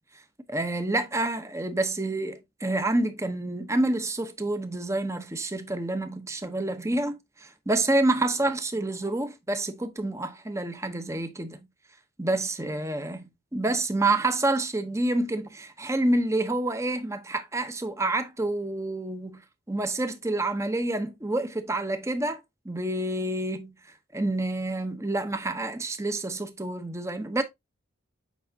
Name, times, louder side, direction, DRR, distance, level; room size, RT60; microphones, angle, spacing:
voice 1, 0.5-11.7 12.2-13.2 13.5-19.4 19.7-23.7 24.1-27.4, right 2 dB, 15° right, 0.8 m, -28 dB
8.3 x 5.5 x 2.7 m
head